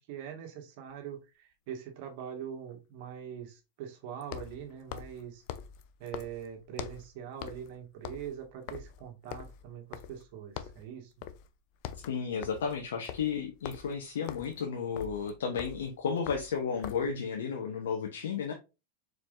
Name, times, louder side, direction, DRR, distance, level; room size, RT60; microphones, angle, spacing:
voice 1, 0.0-5.4 6.0-11.1, right 9 dB, 60° right, 3 dB, 1.7 m, -43 dB
sound 1, 0.9-1.0 4.2-7.1 7.4-7.7 8.0-10.3 10.6-10.9 11.2-11.5 11.7-17.2, left 10 dB, 55° left, 0.6 m, -44 dB
voice 2, 12.1-18.5, left 6 dB, 85° left, 3 dB, 0.9 m, -33 dB
4.6 x 4.2 x 2.6 m, 0.27 s
hypercardioid pair, 120°, 0 cm